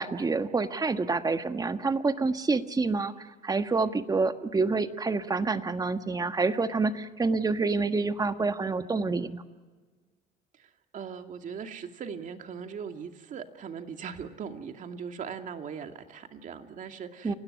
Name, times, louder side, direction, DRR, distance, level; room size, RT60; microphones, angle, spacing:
voice 1, 0.0-9.4 17.2-17.3, right 3 dB, 20° right, 9 dB, 1.5 m, -27 dB
voice 2, 10.5-17.4, right 6 dB, 50° right, 6 dB, 2.4 m, -40 dB
30.0 x 17.5 x 9.7 m, 1.4 s
cardioid pair, 110°, 17 cm